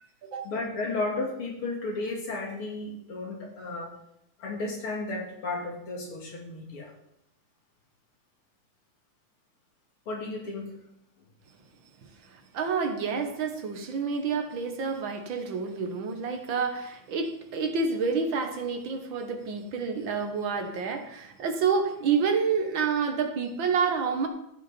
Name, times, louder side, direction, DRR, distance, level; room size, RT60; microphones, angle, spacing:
voice 1, 0.4-4.0 4.4-6.9 10.1-10.8, left 2 dB, 90° left, -1 dB, 3.4 m, -33 dB
voice 2, 12.2-24.3, right 5 dB, 65° right, 5 dB, 2.0 m, -28 dB
13.0 x 8.2 x 4.4 m, 0.77 s
omnidirectional pair, 2.3 m